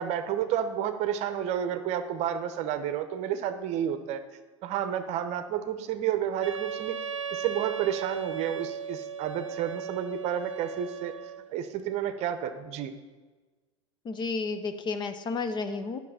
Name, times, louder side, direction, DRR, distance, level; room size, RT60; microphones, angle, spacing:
voice 1, 0.0-4.2 4.6-7.0 7.3-11.1 11.5-13.0, right 9 dB, 45° right, 10 dB, 0.8 m, -30 dB
Wind instrument woodwind instrument, 6.4-11.5, right 7 dB, 85° right, 0.5 m, -37 dB
voice 2, 14.0-16.0, left 4 dB, 30° left, 9 dB, 0.8 m, -32 dB
11.0 x 6.1 x 5.7 m, 1.3 s
hypercardioid pair, 85°, 16 cm